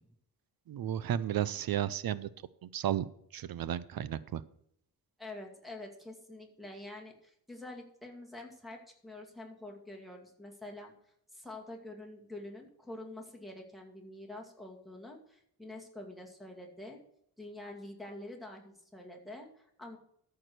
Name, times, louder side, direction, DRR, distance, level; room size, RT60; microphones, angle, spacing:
voice 1, 0.7-2.3 2.6-3.0 3.3-4.4, right 11 dB, 70° right, 17 dB, 0.6 m, -33 dB
voice 2, 5.2-10.9 11.3-17.0 17.4-20.0, left 1 dB, ahead, 1 dB, 2.3 m, -47 dB
13.5 x 4.9 x 6.1 m, 0.71 s
wide cardioid pair, 140°, 37 cm